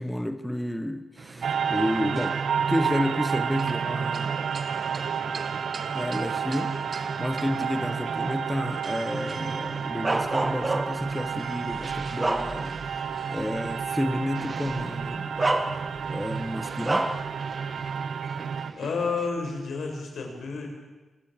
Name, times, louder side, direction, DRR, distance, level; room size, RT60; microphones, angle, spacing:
voice 1, 0.0-2.4 2.7-4.3 5.9-13.0 13.3-15.4 16.1-17.1, left 1 dB, 5° left, 9 dB, 1.0 m, -31 dB
sound 1, 1.2-19.3, right 4 dB, 35° right, 1.4 m, -43 dB
sound 2, 1.4-18.7, right 7 dB, 65° right, 0.7 m, -30 dB
Bark, 10.0-11.1 11.7-13.0 13.4-13.6 14.7-14.8 15.4-16.2 16.8-17.3, right 2 dB, 20° right, 1.5 m, -27 dB
voice 2, 18.8-20.7, left 4 dB, 80° left, 2 dB, 6.2 m, -30 dB
26.0 x 13.5 x 8.9 m, 1.2 s
wide cardioid pair, 165°, 0 cm